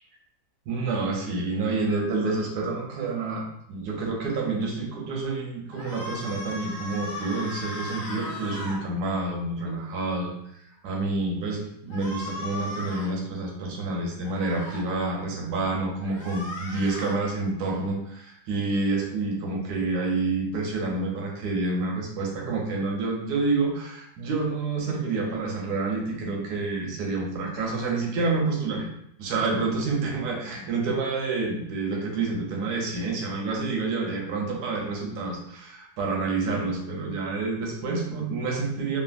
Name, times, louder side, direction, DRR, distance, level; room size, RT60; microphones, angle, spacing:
voice 1, 0.7-3.4 3.7-10.3 10.7-28.9 29.2-39.0, right 3 dB, 85° right, 0 dB, 1.2 m, -28 dB
sound 1, 5.7-8.8 11.9-13.1 14.2-14.8 16.0-17.2, left 2 dB, 50° left, 1.1 m, -37 dB
3.3 x 2.1 x 2.4 m, 0.74 s
omnidirectional pair, 1.7 m